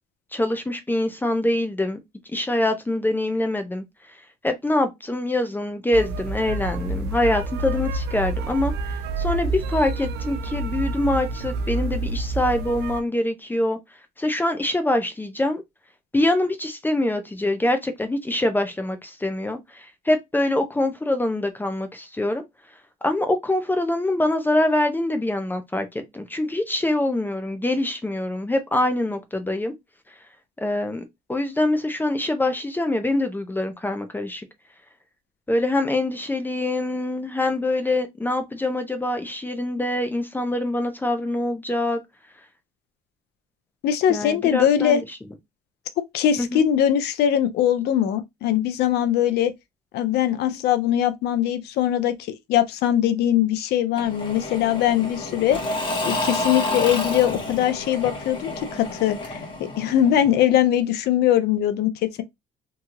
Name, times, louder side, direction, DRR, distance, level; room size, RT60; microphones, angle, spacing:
voice 1, 0.3-2.0 2.3-3.8 4.4-13.8 14.2-15.6 16.1-22.4 23.0-29.7 30.6-31.0 31.3-34.5 35.5-42.0 44.1-45.0 46.4-46.6, left 1 dB, 10° left, 0.5 m, -24 dB
sound 1, 5.9-13.0, right 2 dB, 75° right, 0.4 m, -28 dB
voice 2, 43.8-45.0 46.0-49.5 49.9-55.6 56.0-62.2, left 10 dB, 75° left, 0.6 m, -21 dB
Engine / Mechanisms / Drill, 54.0-60.6, left 2 dB, 30° left, 1.2 m, -30 dB
3.0 x 2.7 x 2.4 m
cardioid pair, 110°, 17 cm